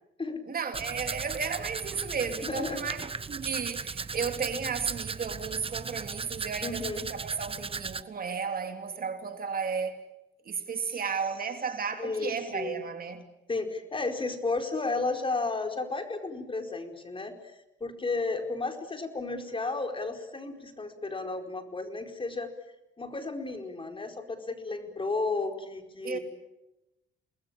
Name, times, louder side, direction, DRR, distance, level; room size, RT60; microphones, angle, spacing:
voice 1, 0.5-10.0 10.4-13.2 26.0-26.2, right 6 dB, 45° right, 3.1 m, -34 dB
Domestic sounds home sounds, 0.7-8.0, right 5 dB, 30° right, 1.1 m, -37 dB
voice 2, 2.4-2.8 6.6-7.0 10.8-11.0 12.0-12.8 13.5-17.5 17.8-22.5 23.0-26.2, left 3 dB, 25° left, 4.7 m, -33 dB
29.5 x 21.0 x 8.8 m
cardioid pair, 90°, 20 cm